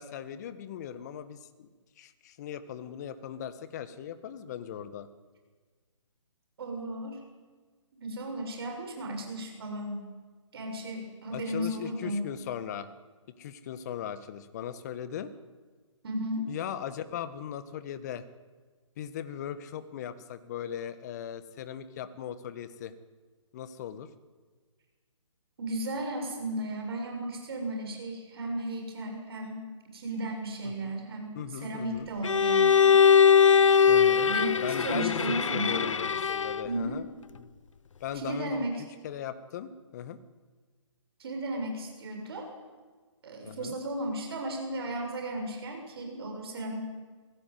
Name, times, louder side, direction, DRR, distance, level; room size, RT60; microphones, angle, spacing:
voice 1, 0.0-1.7 2.0-5.1 11.3-12.9 13.4-15.3 16.5-18.2 19.0-22.9 23.5-24.1 30.6-30.9 31.3-32.1 33.9-34.3 34.5-37.5 38.0-38.7 39.0-40.2 43.4-43.7, left 9 dB, 35° left, 12 dB, 1.6 m, -38 dB
voice 2, 6.6-7.2 8.0-10.1 10.5-12.3 16.0-16.5 25.6-29.7 29.9-33.0 34.0-35.8 36.6-37.0 38.1-38.8 41.2-42.4 43.2-46.8, right 1 dB, 50° right, 3 dB, 6.9 m, -35 dB
Bowed string instrument, 32.2-36.8, left 7 dB, 75° left, 0.7 m, -21 dB
23.0 x 17.0 x 9.5 m, 1.4 s
figure-of-eight pair, 150°, 16 cm